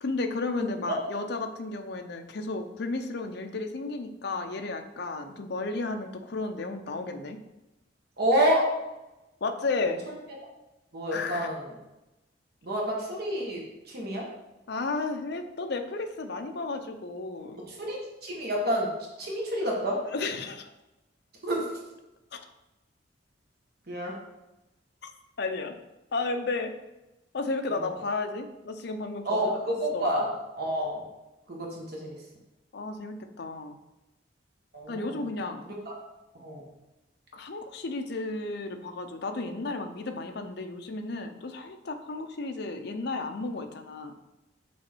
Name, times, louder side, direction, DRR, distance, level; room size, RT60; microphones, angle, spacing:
voice 1, 0.0-7.4 9.4-10.0 11.1-11.5 14.7-17.6 20.1-20.7 22.3-22.4 25.4-25.7 26.1-26.7 27.3-29.6 29.9-30.1 32.7-33.8 34.9-35.6 37.3-44.1, left 3 dB, 60° left, 6 dB, 0.6 m, -33 dB
voice 2, 8.2-8.7 10.1-10.2 10.9-11.7 12.6-14.3 17.7-18.9 19.2-20.0 21.4-21.7 23.9-24.1 27.7-27.9 29.2-30.3 30.5-31.0 31.5-32.2 34.7-35.1 35.8-35.9 36.4-36.6, equal, 55° right, -2 dB, 1.5 m, -28 dB
6.3 x 4.0 x 4.5 m, 0.98 s
head